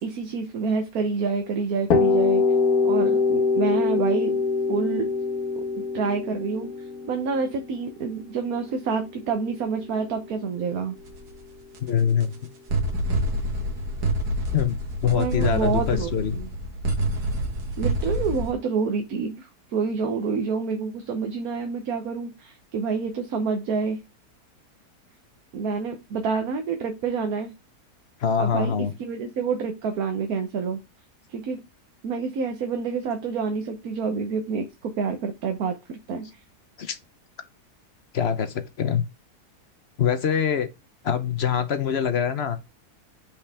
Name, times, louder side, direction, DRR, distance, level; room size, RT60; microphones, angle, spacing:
voice 1, 0.0-2.4 2.8-4.4 4.7-5.1 5.5-11.0 15.1-16.5 17.8-24.0 25.5-27.5 28.4-28.7 29.0-30.8 31.3-31.6 32.0-36.4, right 5 dB, 70° right, 1.4 m, -28 dB
sound 1, 1.9-9.6, left 4 dB, 70° left, 1.9 m, -24 dB
sound 2, 11.0-11.3 11.7-11.8 12.2-12.3 12.7-18.5, right 1 dB, 85° right, 2.0 m, -27 dB
voice 2, 11.8-12.3 14.5-16.4 28.2-28.9 36.8-37.0 38.1-39.0 40.0-40.7 41.0-42.6, left 8 dB, 50° left, 0.9 m, -24 dB
5.7 x 5.1 x 3.4 m
omnidirectional pair, 1.7 m